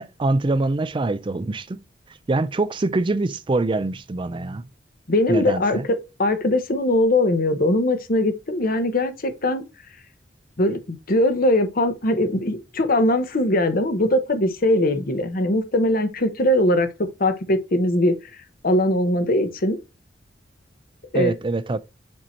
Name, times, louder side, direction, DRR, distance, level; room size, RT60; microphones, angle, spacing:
voice 1, 0.0-1.8 2.3-4.7 5.3-5.8 21.1-21.8, right 2 dB, 30° right, 0.4 m, -24 dB
voice 2, 5.1-9.6 10.6-18.1 18.6-19.8 21.1-21.3, left 1 dB, 50° left, 0.9 m, -21 dB
7.5 x 2.8 x 4.4 m
head